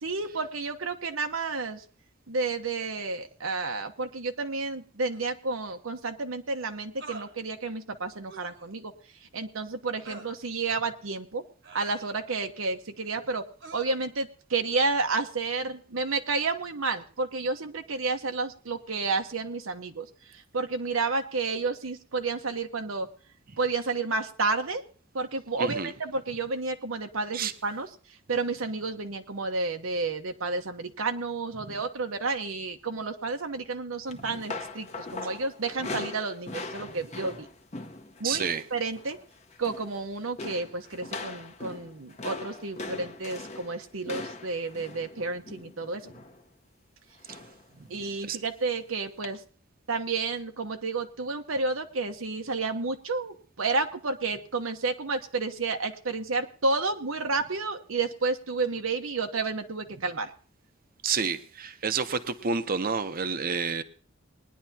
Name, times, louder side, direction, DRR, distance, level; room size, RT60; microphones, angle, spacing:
voice 1, 0.0-1.8 2.3-8.9 9.3-11.4 11.7-13.4 13.7-20.1 20.3-23.1 23.6-24.8 25.1-27.9 28.3-37.5 38.2-38.5 38.7-39.2 39.6-46.0 47.9-49.4 49.9-60.3, right 3 dB, 85° right, 1.1 m, -31 dB
sound 1, 5.1-5.2 7.0-7.3 8.3-8.6 10.0-10.4 11.6-12.4 13.6-13.8, right 4 dB, 65° right, 1.3 m, -45 dB
voice 2, 25.6-25.9 27.3-27.5 31.6-31.8 34.1-34.4 36.9-37.0 38.2-38.6 47.3-47.4 47.8-48.0 48.3-48.4 61.0-63.8, right 5 dB, 45° right, 0.8 m, -30 dB
sound 2, 34.1-38.6 38.9-39.2 39.5-40.0 40.4-46.4 47.3-47.6 48.0-48.2 49.2-49.3, left 3 dB, 35° left, 1.0 m, -40 dB
20.5 x 10.5 x 2.8 m
head